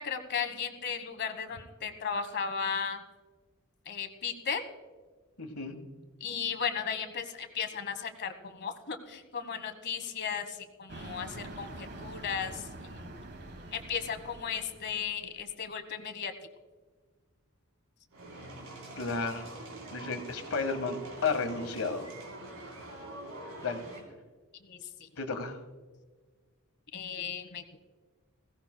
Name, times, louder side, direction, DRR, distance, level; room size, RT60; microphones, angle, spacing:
voice 1, 0.0-3.0 3.8-4.6 6.2-13.2 13.7-16.3 24.6-25.1 26.9-27.8, left 6 dB, 55° left, 8 dB, 1.2 m, -36 dB
voice 2, 5.4-5.8 19.0-19.6 19.9-22.1 23.6-23.9 25.2-25.6, left 4 dB, 85° left, 6 dB, 1.6 m, -33 dB
sound 1, 10.9-15.4, right 1 dB, 50° right, 1.4 m, -45 dB
sound 2, 18.1-24.0, right 1 dB, 75° right, 3.7 m, -45 dB
20.5 x 16.5 x 2.2 m, 1.4 s
head